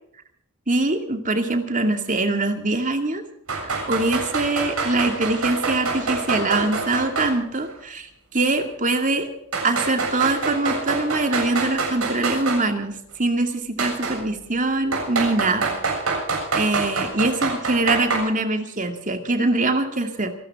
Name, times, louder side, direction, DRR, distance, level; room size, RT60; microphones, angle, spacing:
voice 1, 0.7-3.2 3.6-9.3 9.6-15.7 16.5-20.3, right 2 dB, 35° right, 6 dB, 2.4 m, -23 dB
sound 1, 3.5-7.4 7.6-7.7 8.6-8.7 9.5-12.6 13.8-14.2 14.9-18.2, right 4 dB, 80° right, 7.3 m, -26 dB
27.5 x 12.5 x 3.7 m, 0.70 s
head